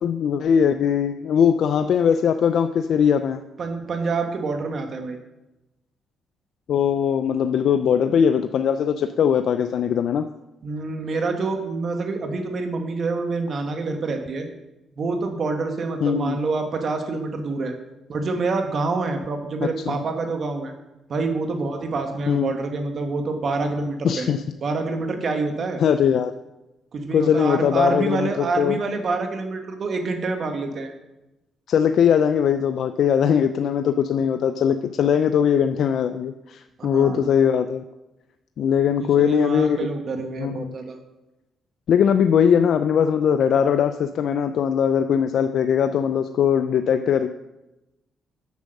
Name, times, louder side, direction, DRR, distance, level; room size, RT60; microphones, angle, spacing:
voice 1, 0.0-3.4 6.7-10.3 16.0-16.4 19.9-20.0 22.3-22.5 24.0-24.4 25.8-26.3 27.1-28.8 31.7-37.8 38.6-39.8 40.4-40.8 41.9-47.3, left 8 dB, 65° left, 9 dB, 0.4 m, -20 dB
voice 2, 3.6-5.2 10.6-14.5 15.0-17.7 18.1-20.7 21.1-24.3 24.6-25.8 26.9-30.9 36.8-37.3 39.0-41.0, right 3 dB, 50° right, 5 dB, 1.6 m, -27 dB
8.2 x 6.4 x 6.5 m, 0.99 s
cardioid pair, 90°, 0 cm